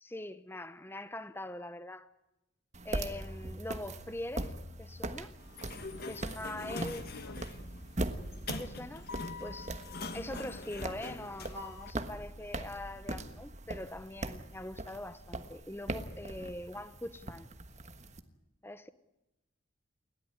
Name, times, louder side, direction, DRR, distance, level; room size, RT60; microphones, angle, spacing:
voice 1, 0.0-2.1 2.8-5.3 6.1-7.1 8.5-9.1 9.4-9.7 10.1-17.5 18.6-18.9, left 1 dB, 10° left, 0.8 m, -43 dB
sound 1, 2.7-18.2, right 1 dB, 35° right, 1.3 m, -41 dB
Sliding door, 5.4-11.9, left 3 dB, 50° left, 1.8 m, -43 dB
voice 2, 6.6-7.9 10.1-10.3, left 4 dB, 80° left, 0.7 m, -52 dB
29.0 x 12.5 x 9.6 m
head